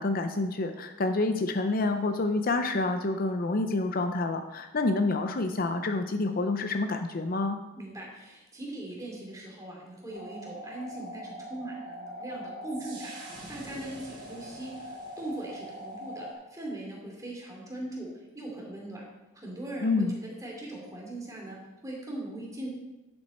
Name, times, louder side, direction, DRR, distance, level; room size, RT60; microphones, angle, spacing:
voice 1, 0.0-7.6 19.8-20.2, left 2 dB, 45° left, 7 dB, 0.6 m, -28 dB
voice 2, 7.7-13.1 13.5-19.0 19.3-20.0 20.4-22.7, right 1 dB, 15° right, -3 dB, 2.7 m, -40 dB
sound 1, 10.1-16.3, equal, 55° right, 4.2 m, -42 dB
11.0 x 7.8 x 4.3 m, 1.0 s
head